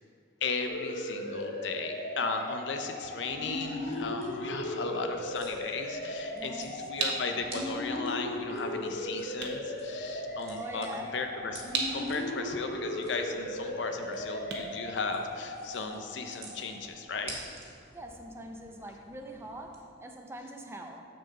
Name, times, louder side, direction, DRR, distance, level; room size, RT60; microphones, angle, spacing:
voice 1, 0.4-10.9 11.1-11.6 11.9-17.4, left 4 dB, 85° left, 5 dB, 0.7 m, -36 dB
sound 1, 0.7-17.1, left 1 dB, 55° left, 0.8 m, -37 dB
sound 2, 3.6-19.8, right 2 dB, 35° right, 1.4 m, -52 dB
voice 2, 6.3-6.7 10.5-11.2 17.9-21.1, right 1 dB, 15° right, 3 dB, 0.5 m, -43 dB
sound 3, 6.3-15.7, right 4 dB, 70° right, 0.9 m, -39 dB
6.3 x 4.4 x 6.6 m, 2.2 s
head